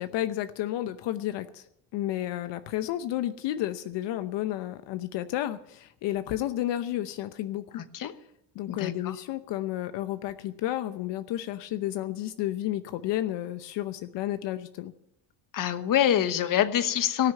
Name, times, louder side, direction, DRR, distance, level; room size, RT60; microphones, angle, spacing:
voice 1, 0.0-1.6 1.9-7.8 8.5-14.9, left 13 dB, 80° left, 11 dB, 0.9 m, -31 dB
voice 2, 7.8-8.1 8.7-9.1 15.5-17.3, left 10 dB, 50° left, 12 dB, 1.1 m, -25 dB
18.5 x 6.4 x 9.3 m, 0.76 s
cardioid pair, 115°, 42 cm